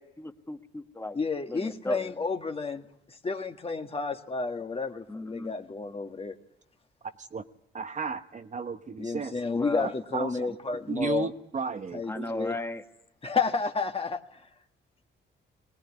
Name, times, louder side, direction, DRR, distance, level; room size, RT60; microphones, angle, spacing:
voice 1, 0.0-1.2 1.5-2.2 5.1-5.5 9.5-9.9 12.1-12.8, left 1 dB, 10° left, 7 dB, 1.5 m, -36 dB
voice 2, 1.1-6.4 9.0-11.3 11.9-12.5 13.2-14.4, left 4 dB, 30° left, 6 dB, 1.6 m, -31 dB
voice 3, 7.7-9.3 9.8-10.6 10.9-12.3, right 5 dB, 40° right, 8 dB, 1.1 m, -34 dB
21.0 x 19.0 x 9.6 m, 0.83 s
cardioid pair, 90°, 20 cm